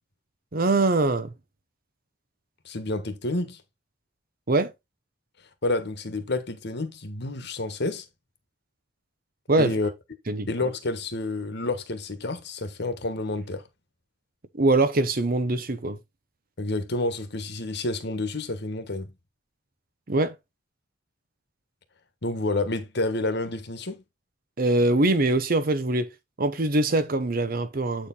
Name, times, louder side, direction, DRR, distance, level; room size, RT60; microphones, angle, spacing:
voice 1, 0.5-1.3 4.5-4.7 9.5-9.7 10.3-10.5 14.5-16.0 20.1-20.4 24.6-26.1 26.4-28.1, right 2 dB, 50° right, 0.9 m, -23 dB
voice 2, 2.6-3.6 5.6-8.0 9.6-9.9 10.5-13.6 16.6-19.1 22.2-24.0, left 2 dB, 60° left, 1.4 m, -29 dB
8.4 x 4.5 x 4.0 m
head